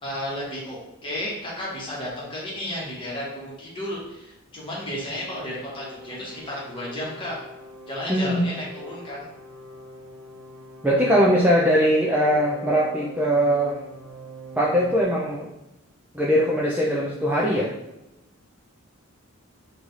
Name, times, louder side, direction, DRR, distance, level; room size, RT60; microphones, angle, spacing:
voice 1, 0.0-7.4 7.9-9.3, left 1 dB, 25° left, -5 dB, 1.1 m, -33 dB
sound 1, 5.2-15.0, right 1 dB, 75° right, 0.7 m, -43 dB
voice 2, 8.1-8.5 10.8-13.8 14.6-15.5 16.1-17.7, equal, 10° right, -5 dB, 0.3 m, -21 dB
3.1 x 2.4 x 4.0 m, 0.90 s
head